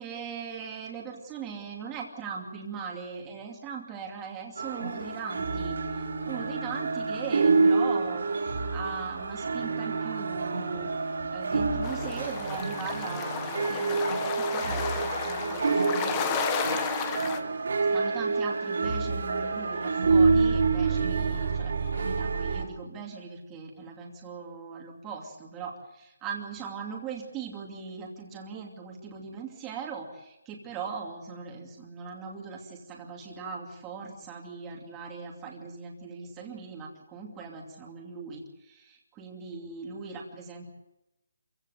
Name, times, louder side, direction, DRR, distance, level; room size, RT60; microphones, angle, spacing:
voice 1, 0.0-16.4 17.9-40.7, right 5 dB, 10° right, -1 dB, 2.6 m, -40 dB
sound 1, 4.6-22.6, right 4 dB, 60° right, 3.9 m, -27 dB
sound 2, 11.8-17.4, left 8 dB, 15° left, 1.2 m, -33 dB
27.0 x 16.0 x 8.0 m, 0.93 s
hypercardioid pair, 175°, 0 cm